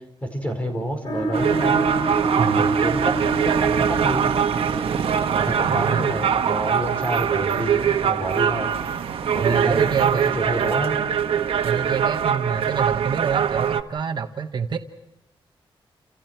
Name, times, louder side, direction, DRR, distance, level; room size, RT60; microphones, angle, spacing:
voice 1, 0.2-1.9 2.6-3.2 3.4-4.3 5.3-8.7 9.3-11.0, right 1 dB, 15° left, 4 dB, 5.2 m, -28 dB
sound 1, 1.0-12.2, right 3 dB, 50° left, 7.5 m, -30 dB
sound 2, 1.3-13.8, right 8 dB, 85° right, 1.2 m, -23 dB
voice 2, 2.4-2.7 5.6-6.1 9.4-10.7 11.6-14.8, right 6 dB, 50° right, 6 dB, 1.2 m, -27 dB
30.0 x 28.5 x 4.6 m, 0.90 s
wide cardioid pair, 170°, 10 cm